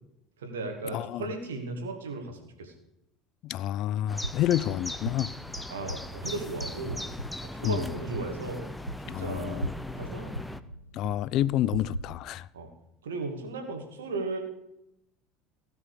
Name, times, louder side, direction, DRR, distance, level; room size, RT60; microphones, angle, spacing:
voice 1, 0.4-2.7 5.7-7.0 7.5-8.7 9.0-9.7 10.0-10.4 12.5-12.7 13.0-14.4, right 3 dB, 70° right, 2.4 m, -36 dB
voice 2, 0.9-1.2 3.4-5.3 7.6-7.9 9.1-9.7 10.9-12.5, left 13 dB, 50° left, 0.4 m, -29 dB
sound 1, 4.1-10.6, left 1 dB, 5° left, 0.7 m, -39 dB
sound 2, 4.2-12.0, right 1 dB, 90° right, 0.5 m, -40 dB
17.5 x 6.1 x 6.8 m
figure-of-eight pair, 70°, 0 cm